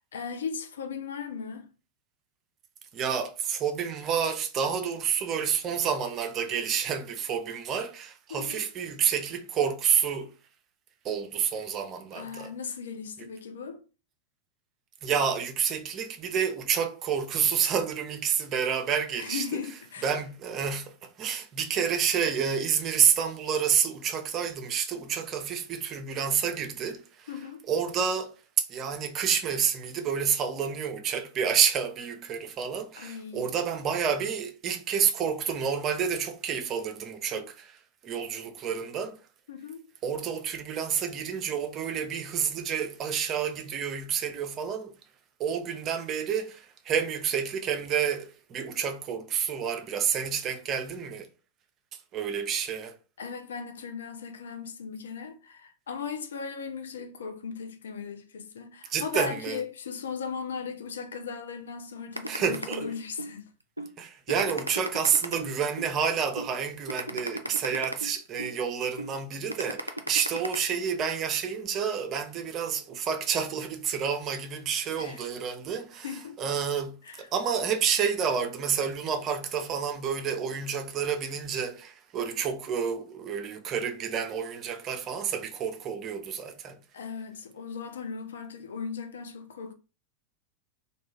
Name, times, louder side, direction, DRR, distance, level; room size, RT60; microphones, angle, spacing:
voice 1, 0.0-1.7 8.3-8.7 12.1-13.8 19.2-20.1 27.3-27.7 33.0-33.5 37.3-37.5 39.5-39.9 53.2-63.5 67.1-67.6 74.9-75.2 76.0-76.4 77.0-77.3 86.9-89.7, left 6 dB, 65° left, 0.4 m, -37 dB
voice 2, 2.9-10.3 11.0-12.5 15.0-19.4 20.0-27.3 27.7-37.8 38.0-39.2 40.0-44.9 45.4-51.3 52.1-52.9 58.9-59.6 62.3-62.9 64.0-76.1 76.4-86.8, right 7 dB, 30° right, 0.5 m, -29 dB
sound 1, 62.2-63.3 63.8-63.9 64.3-65.9 66.4-66.5 66.9-68.5 69.0-69.1 69.5-70.6, right 1 dB, 85° right, 0.3 m, -35 dB
2.3 x 2.2 x 3.2 m
figure-of-eight pair, 90°, 0 cm